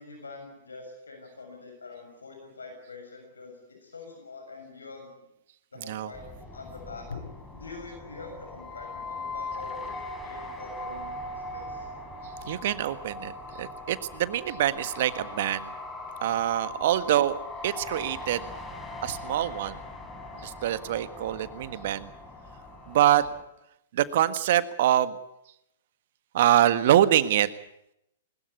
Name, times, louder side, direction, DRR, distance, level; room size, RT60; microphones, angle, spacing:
voice 1, 0.0-5.3 5.7-7.2 7.5-10.0 10.2-11.9 16.7-16.8, left 3 dB, 80° left, 4 dB, 6.9 m, -44 dB
voice 2, 5.8-6.1 12.4-15.7 16.2-18.5 19.0-19.8 20.4-22.1 22.9-23.3 23.9-25.2 26.3-27.5, right 12 dB, 55° right, 13 dB, 1.6 m, -25 dB
sound 1, 6.1-23.4, left 2 dB, 15° left, 4.8 m, -40 dB
21.5 x 20.5 x 8.4 m, 0.80 s
figure-of-eight pair, 110°, 0 cm